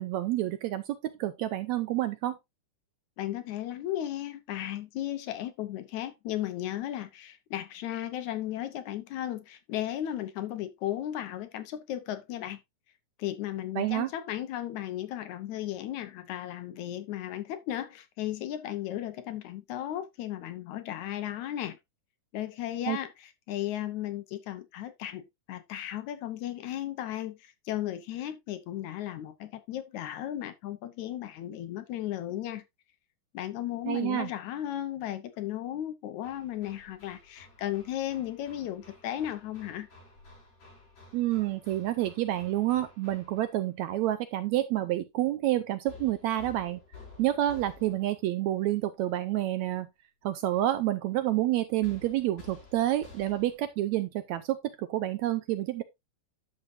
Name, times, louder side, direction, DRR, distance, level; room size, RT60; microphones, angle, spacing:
voice 1, 0.0-2.4 13.8-14.1 22.9-23.0 33.9-34.3 41.1-46.8 47.2-49.9 50.2-55.8, right 14 dB, 80° right, 1.7 m, -29 dB
voice 2, 3.2-12.6 13.2-21.8 22.3-32.6 33.3-39.9, left 12 dB, 75° left, 2.1 m, -35 dB
Hammer, 36.2-43.7 45.9-48.3 51.8-53.7, left 4 dB, 50° left, 7.2 m, -53 dB
10.5 x 6.6 x 2.6 m
omnidirectional pair, 3.7 m